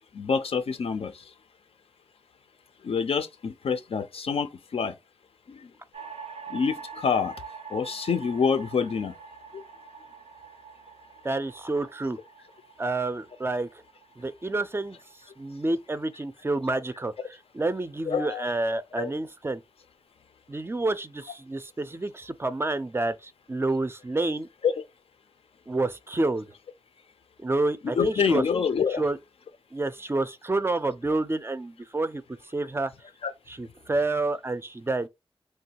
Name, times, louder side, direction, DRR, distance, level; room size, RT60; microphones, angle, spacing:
voice 1, 0.1-1.1 2.8-4.9 5.5-5.6 6.5-7.3 7.7-9.1 9.5-9.6 18.1-18.5 19.0-19.1 24.6-24.8 28.0-29.0 33.2-33.3, left 6 dB, 75° left, 0.5 m, -26 dB
sound 1, 5.9-16.3, right 5 dB, 90° right, 0.5 m, -45 dB
voice 2, 11.2-12.2 12.8-13.7 14.2-15.0 15.4-19.6 20.5-24.5 25.7-26.4 27.4-28.4 29.0-29.2 29.7-32.2 32.5-32.9 33.5-35.1, right 2 dB, 25° right, 0.4 m, -29 dB
3.2 x 2.2 x 2.8 m
wide cardioid pair, 65°, 10 cm